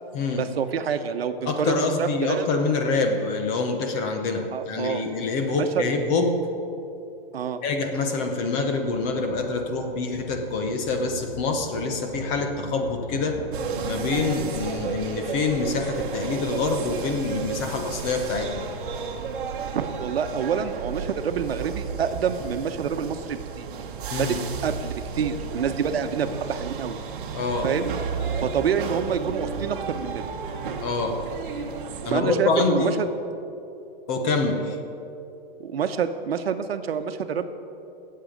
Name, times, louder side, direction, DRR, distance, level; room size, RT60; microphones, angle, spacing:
voice 1, 0.4-2.5 4.5-5.1 5.6-5.8 7.3-7.6 19.7-23.7 24.2-24.4 24.6-27.0 27.6-27.9 28.4-30.3 32.1-32.9 35.6-37.5, right 7 dB, 80° right, 9 dB, 1.0 m, -27 dB
voice 2, 1.5-6.4 7.6-13.4 13.8-18.6 24.1-24.4 27.3-27.7 30.8-31.2 32.0-33.0 34.1-34.8, left 3 dB, 20° left, 4 dB, 0.7 m, -26 dB
sound 1, 8.7-18.1, left 2 dB, 55° left, 2.0 m, -41 dB
sound 2, 13.5-32.1, right 6 dB, 55° right, 1.2 m, -33 dB
18.5 x 7.6 x 5.1 m, 2.8 s
hypercardioid pair, 165°, 30 cm